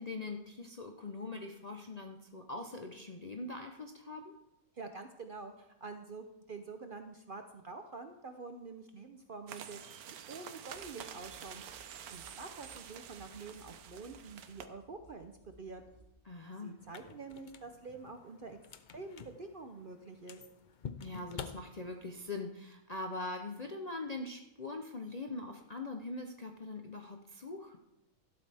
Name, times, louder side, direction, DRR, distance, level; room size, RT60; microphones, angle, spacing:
voice 1, 0.0-4.3 16.2-16.7 21.0-27.8, left 2 dB, 40° left, 3 dB, 0.6 m, -42 dB
voice 2, 4.7-9.8 10.1-11.6 12.1-15.3 15.6-15.8 16.6-18.6 18.9-20.4, right 4 dB, 50° right, 6 dB, 0.7 m, -47 dB
sound 1, 9.5-14.7, right 9 dB, 85° right, 1.2 m, -48 dB
sound 2, 10.6-16.1, right 1 dB, 15° left, 3.3 m, -63 dB
sound 3, 16.8-22.3, left 7 dB, 85° left, 0.4 m, -49 dB
12.5 x 11.5 x 3.4 m, 0.87 s
omnidirectional pair, 1.6 m